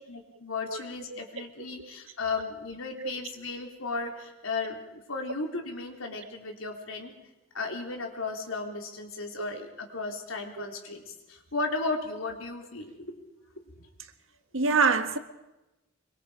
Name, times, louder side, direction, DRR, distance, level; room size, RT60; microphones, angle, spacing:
voice 1, 0.1-7.1 7.5-13.2 13.8-13.9, left 3 dB, 85° left, 3.8 m, -35 dB
voice 2, 14.5-15.2, right 4 dB, 80° right, 1.6 m, -24 dB
25.5 x 24.0 x 5.1 m
head